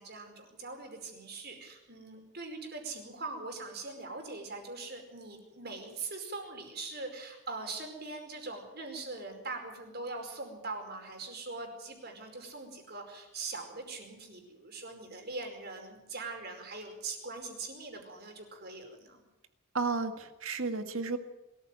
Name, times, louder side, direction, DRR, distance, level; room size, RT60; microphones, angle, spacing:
voice 1, 0.0-19.2, right 3 dB, 50° right, 4 dB, 5.0 m, -42 dB
voice 2, 19.7-21.2, right 4 dB, 75° right, 8 dB, 1.8 m, -32 dB
22.5 x 14.0 x 9.2 m, 0.96 s
head